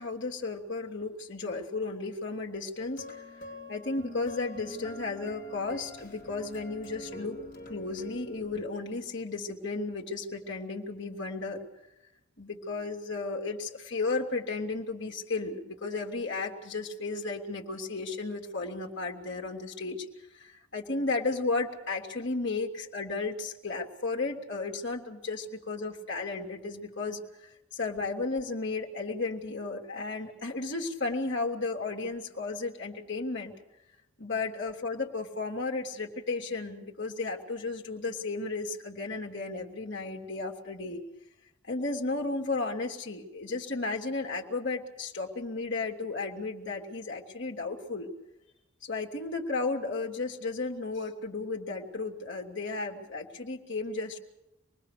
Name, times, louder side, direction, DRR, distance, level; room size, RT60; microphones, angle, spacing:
voice 1, 0.0-3.2 3.7-7.4 7.7-11.7 12.4-20.0 20.3-33.5 34.2-41.0 41.7-48.1 48.8-54.2, left 3 dB, 60° left, 1 dB, 3.0 m, -34 dB
sound 1, 2.8-8.6, left 1 dB, 45° left, 4.1 m, -45 dB
26.5 x 20.5 x 6.7 m, 0.89 s
head